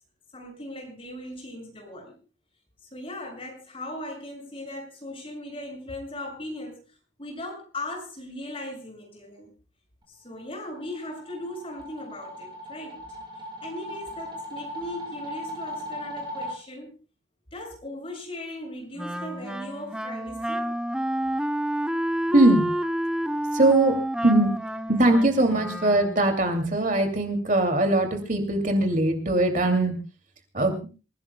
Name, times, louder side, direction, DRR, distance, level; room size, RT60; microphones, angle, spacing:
voice 1, 0.3-2.2 2.9-6.8 7.2-9.5 10.1-13.0 13.6-16.9 17.5-20.7, left 1 dB, 30° left, 1 dB, 7.0 m, -38 dB
sound 1, 10.4-16.5, equal, 25° right, 6.2 m, -38 dB
Wind instrument woodwind instrument, 19.0-26.3, right 1 dB, 5° right, 0.7 m, -29 dB
voice 2, 22.3-22.7 23.5-24.0 24.2-24.5 24.9-29.9 30.5-30.9, right 2 dB, 45° right, 5 dB, 2.6 m, -21 dB
27.5 x 16.5 x 2.3 m, 0.34 s
head